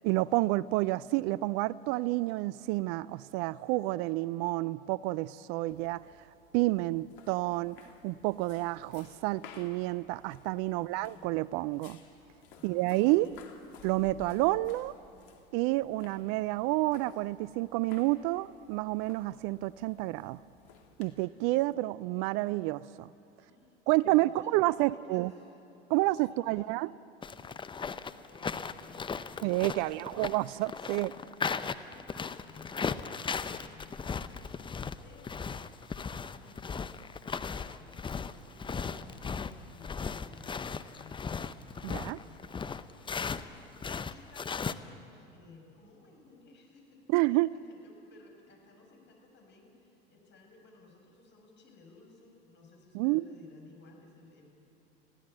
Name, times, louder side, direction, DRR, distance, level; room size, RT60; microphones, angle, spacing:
voice 1, 0.0-6.0 6.5-7.8 8.0-12.0 12.6-13.3 13.8-14.9 15.5-20.4 21.0-23.1 23.9-25.3 25.9-26.9 29.4-31.1 41.8-42.2 47.1-47.5 52.9-53.2, right 19 dB, 50° right, 20 dB, 0.4 m, -29 dB
sound 1, 5.7-21.3, left 6 dB, 65° left, 2.4 m, -56 dB
voice 2, 10.7-11.3 12.6-13.6 23.4-25.5 26.3-26.8 27.7-29.4 29.8-30.3 30.6-30.9 31.4-35.5 35.9-41.5 42.0-54.5, left 3 dB, 40° left, 2 dB, 6.0 m, -58 dB
sound 2, 27.2-43.5 43.7-44.7, left 5 dB, 15° left, 0.7 m, -37 dB
21.5 x 16.0 x 7.9 m, 3.0 s
hypercardioid pair, 80°, 29 cm